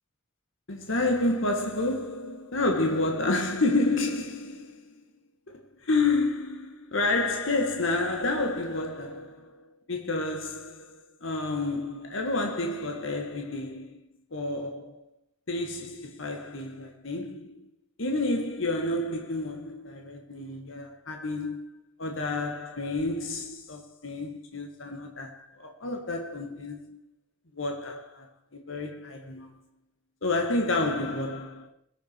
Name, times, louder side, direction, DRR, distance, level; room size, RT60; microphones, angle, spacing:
voice 1, 0.7-5.0 5.5-14.0 14.3-15.0 15.5-17.7 18.0-27.0 27.5-28.3 28.5-29.5 30.2-31.7, left 2 dB, 65° left, 1.6 m, -30 dB
19.5 x 7.2 x 4.5 m
head